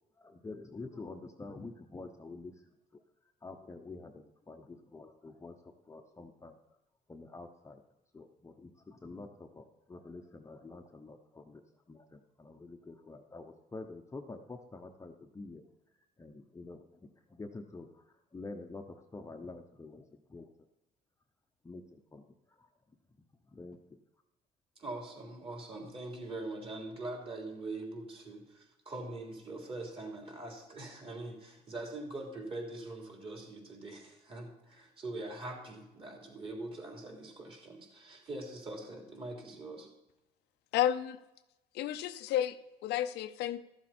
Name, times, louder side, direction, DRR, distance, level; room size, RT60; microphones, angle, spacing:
voice 1, 0.2-3.0 3.4-6.6 7.1-7.8 8.1-15.6 16.2-16.9 17.3-20.5 21.6-22.7 23.4-24.0, left 3 dB, 15° left, 4 dB, 0.8 m, -48 dB
voice 2, 24.8-39.9, right 2 dB, 35° right, 0 dB, 3.5 m, -43 dB
voice 3, 40.7-41.2 41.7-43.6, left 11 dB, 80° left, 11 dB, 0.6 m, -32 dB
14.0 x 7.5 x 4.3 m, 0.97 s
cardioid pair, 110°, 17 cm